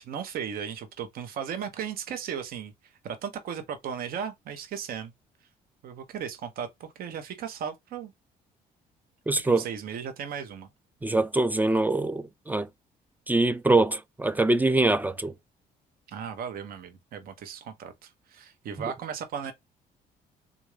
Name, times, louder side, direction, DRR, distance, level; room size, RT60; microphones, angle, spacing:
voice 1, 0.0-2.7 3.0-5.1 5.8-8.1 9.4-10.7 16.1-19.5, right 7 dB, 65° right, 0.8 m, -36 dB
voice 2, 9.3-9.6 11.0-12.7 13.3-15.3, right 2 dB, 10° right, 0.3 m, -24 dB
3.6 x 2.6 x 3.2 m
cardioid pair, 100°, 16 cm